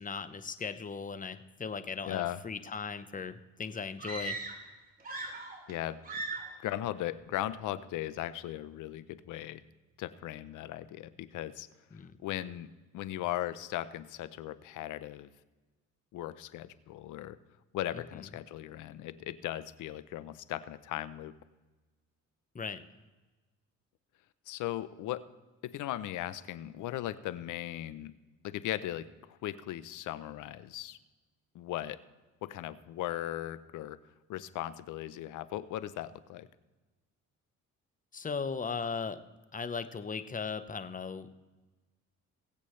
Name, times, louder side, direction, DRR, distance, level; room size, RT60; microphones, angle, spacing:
voice 1, 0.0-4.4 11.9-12.2 22.5-22.8 38.1-39.2 39.5-41.4, left 5 dB, 25° left, 11 dB, 0.9 m, -37 dB
voice 2, 2.1-2.4 5.7-6.0 6.6-9.6 10.0-11.7 12.2-12.7 12.9-15.3 16.1-17.4 17.7-21.3 24.5-25.2 25.6-28.1 28.4-31.0 31.5-32.0 32.4-34.0 34.3-36.5, left 13 dB, 85° left, 15 dB, 0.7 m, -38 dB
sound 1, 4.0-4.7 5.0-5.8 6.0-6.6, right 2 dB, 30° right, 3.0 m, -39 dB
21.5 x 8.4 x 3.2 m, 1.2 s
cardioid pair, 90°, 30 cm